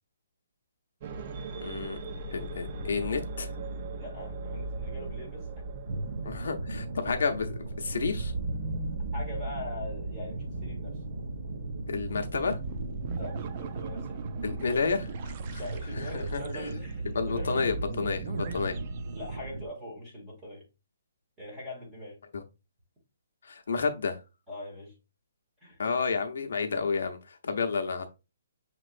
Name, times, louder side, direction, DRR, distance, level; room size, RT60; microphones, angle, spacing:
sound 1, 1.0-19.4, right 3 dB, 25° right, 0.3 m, -38 dB
voice 1, 1.6-2.0 2.3-3.5 6.2-8.3 11.9-12.6 14.4-15.6 16.0-16.6 17.1-18.8 22.3-22.4 23.4-24.2 25.8-28.1, left 5 dB, 60° left, 0.7 m, -31 dB
voice 2, 4.0-5.6 9.1-11.0 13.1-14.2 15.6-17.6 19.1-20.6 21.4-22.2 24.5-24.9 25.6-25.8, left 1 dB, 10° right, 1.2 m, -42 dB
sound 2, 5.9-19.7, right 2 dB, 70° right, 0.6 m, -38 dB
6.2 x 3.0 x 2.5 m
hypercardioid pair, 180°, 0 cm